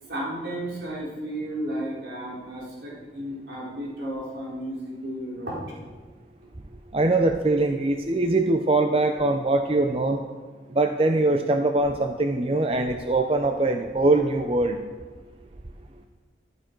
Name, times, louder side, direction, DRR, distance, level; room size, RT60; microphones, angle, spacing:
voice 1, 0.1-5.6, right 1 dB, 85° right, -6 dB, 4.1 m, -33 dB
voice 2, 6.9-10.2 10.7-14.8, right 2 dB, 30° right, 6 dB, 0.6 m, -22 dB
15.0 x 12.5 x 4.5 m, 1.4 s
head